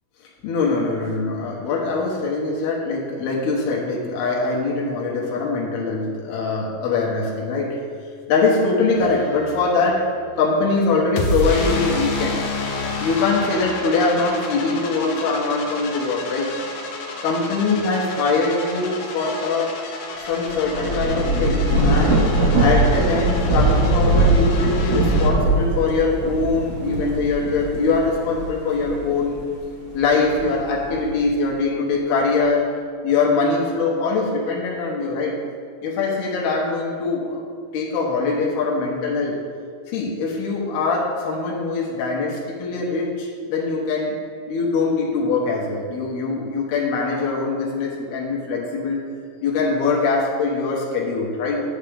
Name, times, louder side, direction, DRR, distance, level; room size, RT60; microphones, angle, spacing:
voice 1, 0.4-7.8 8.3-10.1 10.4-12.5 13.0-16.5 17.2-19.8 20.2-22.2 22.6-29.4 29.9-32.7 33.0-35.4 35.8-37.5 37.7-39.4 39.9-44.1 44.5-49.0 49.4-51.6, left 3 dB, 85° left, -3 dB, 3.2 m, -22 dB
sound 1, 9.0-25.3, left 2 dB, 65° left, 2.3 m, -30 dB
Thunder / Rain, 20.4-29.3 29.8-31.2, right 2 dB, 50° right, 0.8 m, -20 dB
10.0 x 8.1 x 3.5 m, 2.1 s
omnidirectional pair, 4.5 m